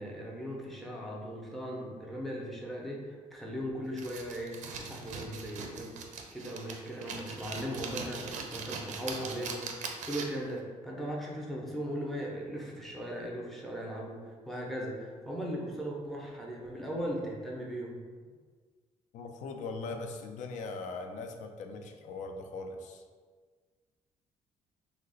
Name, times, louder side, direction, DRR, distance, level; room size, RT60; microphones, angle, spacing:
voice 1, 0.0-5.9 6.3-18.0, equal, ahead, -3 dB, 0.5 m, -38 dB
sound 1, 4.0-10.5, right 5 dB, 70° right, 0.4 m, -41 dB
voice 2, 19.1-23.0, left 3 dB, 70° left, 5 dB, 0.4 m, -40 dB
2.8 x 2.0 x 3.9 m, 1.5 s
cardioid pair, 140°, 13 cm